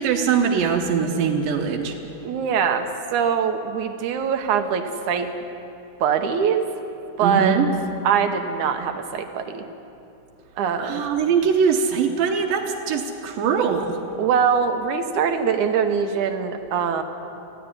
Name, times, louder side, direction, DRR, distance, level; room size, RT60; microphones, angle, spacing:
voice 1, 0.0-2.0 7.2-7.7 10.8-14.0, right 6 dB, 85° right, 1 dB, 2.8 m, -22 dB
voice 2, 2.2-5.3 6.0-6.7 7.2-7.6 8.0-9.6 10.6-11.0 14.2-17.0, right 7 dB, 70° right, 7 dB, 2.3 m, -22 dB
18.5 x 15.5 x 9.8 m, 2.8 s
omnidirectional pair, 3.9 m